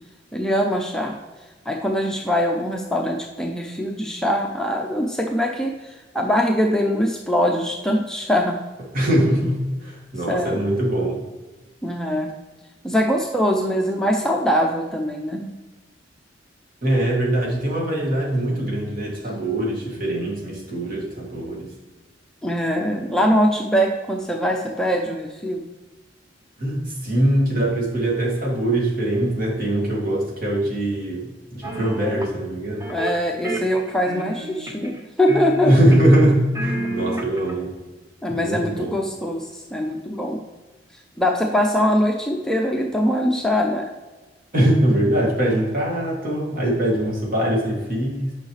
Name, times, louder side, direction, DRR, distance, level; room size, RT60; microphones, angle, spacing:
voice 1, 0.3-1.2 1.7-8.6 10.3-10.6 11.8-12.3 12.8-15.6 22.4-25.7 32.9-35.8 38.2-40.4 41.2-43.9, equal, 5° left, 0 dB, 0.6 m, -22 dB
voice 2, 8.9-11.2 16.8-21.7 26.6-32.9 35.6-37.7 38.3-38.9 44.5-48.3, right 1 dB, 50° right, -3 dB, 2.3 m, -22 dB
sound 1, 31.6-32.3 32.8-33.2 33.4-35.0 35.3-36.2 36.5-37.5, right 1 dB, 20° right, 0.9 m, -29 dB
8.9 x 5.6 x 3.2 m, 1.2 s
head